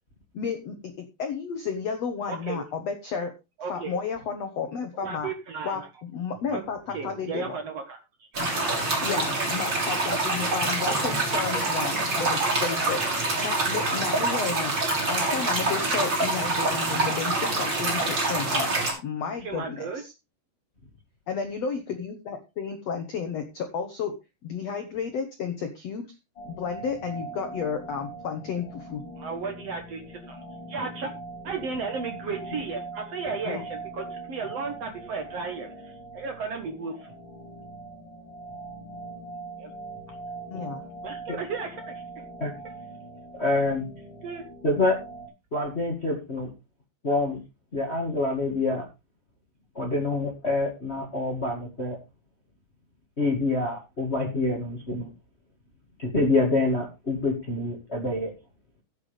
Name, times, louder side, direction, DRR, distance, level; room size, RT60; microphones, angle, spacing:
voice 1, 0.3-0.8 1.2-3.3 3.7-5.3 5.6-7.6 9.0-13.0 13.4-14.7 15.1-18.6 19.0-20.1 21.3-24.1 24.4-26.1 26.4-29.0 33.4-33.6 40.5-40.8, left 6 dB, 80° left, 6 dB, 1.4 m, -32 dB
voice 2, 2.3-2.6 3.6-3.9 5.0-5.9 6.5-6.6 6.9-8.0 8.4-8.8 10.9-11.0 11.9-12.0 17.6-17.9 19.4-20.0 29.2-30.4 30.7-31.1 31.4-36.9 39.6-39.7 41.0-41.7 44.2-44.4, right 5 dB, 70° right, 5 dB, 1.5 m, -34 dB
sound 1, 8.3-18.9, right 2 dB, 25° right, 4.9 m, -26 dB
sound 2, 26.4-45.3, right 2 dB, 25° left, 6.2 m, -42 dB
voice 3, 43.3-43.8 44.6-45.0 45.5-46.5 47.0-47.4 47.7-48.8 49.7-52.0 53.2-55.1 56.0-58.3, left 2 dB, 45° left, 2 dB, 0.8 m, -26 dB
15.5 x 8.4 x 3.3 m, 0.26 s
omnidirectional pair, 5.0 m